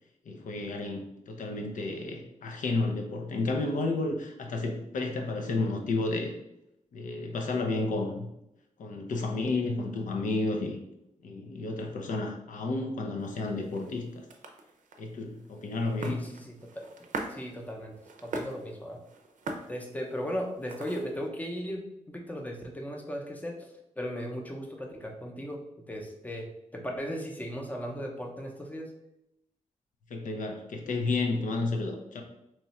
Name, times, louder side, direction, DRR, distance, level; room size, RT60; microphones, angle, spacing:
voice 1, 0.3-6.3 6.9-8.3 8.8-10.8 11.2-14.2 15.0-16.2 30.1-32.2, left 3 dB, 85° left, 3 dB, 0.5 m, -31 dB
sound 1, 13.2-21.3, right 3 dB, 75° right, 0.5 m, -43 dB
voice 2, 16.0-16.9 17.3-17.9 18.2-19.0 19.7-25.6 25.9-26.5 26.7-28.9, equal, 10° left, 1 dB, 0.6 m, -37 dB
3.0 x 2.3 x 4.1 m, 0.84 s
wide cardioid pair, 100°, 13 cm